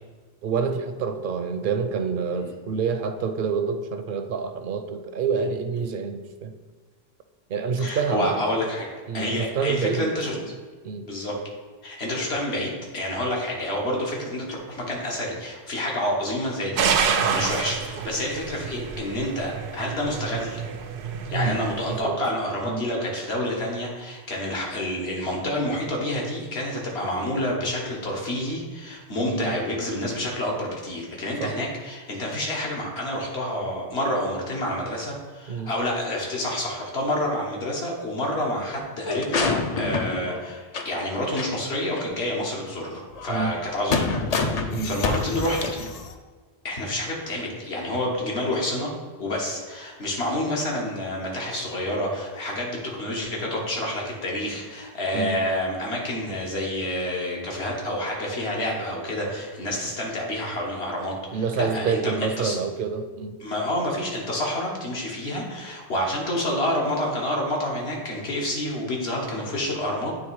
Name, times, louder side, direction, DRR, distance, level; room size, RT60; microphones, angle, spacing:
voice 1, 0.4-6.5 7.5-8.4 9.1-10.4 10.8-11.1 21.3-21.6 21.9-22.2 22.6-22.8 29.3-29.5 31.4-31.5 35.5-35.7 43.3-43.5 44.7-45.0 55.1-55.4 61.3-63.4, right 5 dB, 60° right, 8 dB, 0.7 m, -27 dB
voice 2, 7.8-8.9 9.1-10.3 11.0-11.3 11.8-16.9 17.3-20.6 21.3-45.6 46.6-48.9 49.2-62.6 63.4-70.2, left 1 dB, 75° left, -2 dB, 1.6 m, -28 dB
sound 1, 16.8-22.0, right 6 dB, 90° right, 0.9 m, -28 dB
sound 2, 39.0-41.0 41.4-41.5 41.9-42.0 43.1-46.1, left 4 dB, 50° left, 0.5 m, -27 dB
8.7 x 3.3 x 4.7 m, 1.5 s
omnidirectional pair, 1.1 m